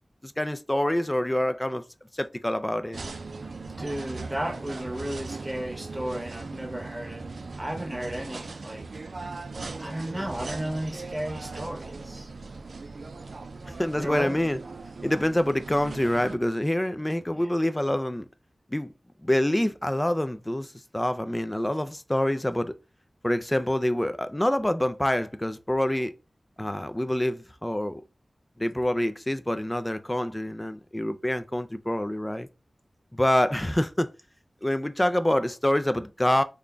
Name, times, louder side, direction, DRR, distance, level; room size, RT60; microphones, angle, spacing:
voice 1, 0.2-1.8 2.1-3.0 13.7-14.6 15.0-18.3 18.7-18.9 19.2-22.7 23.2-26.1 26.6-28.0 28.6-32.5 33.1-34.1 34.6-36.4, left 1 dB, 15° left, 0.3 m, -26 dB
sound 1, 2.9-16.4, right 3 dB, 85° right, 0.4 m, -39 dB
voice 2, 3.8-7.3 7.6-8.9 9.8-12.3 14.0-14.4 17.3-17.5 26.6-26.7, right 1 dB, 20° right, 0.8 m, -34 dB
3.8 x 2.2 x 3.4 m
wide cardioid pair, 80°, 0 cm